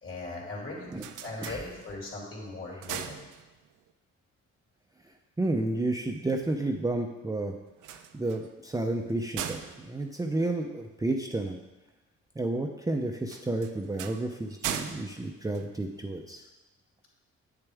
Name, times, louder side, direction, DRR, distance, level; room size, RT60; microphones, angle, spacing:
voice 1, 0.0-3.3, left 2 dB, 45° left, -3 dB, 2.8 m, -39 dB
sound 1, 0.7-2.2 2.6-3.9 7.7-11.2 13.2-16.3, right 9 dB, 80° right, 0.6 m, -40 dB
voice 2, 5.4-7.5 8.1-11.6 12.4-16.4, right 2 dB, 10° right, 2 dB, 0.5 m, -31 dB
8.1 x 7.0 x 3.5 m, 1.1 s
cardioid pair, 90°, 30 cm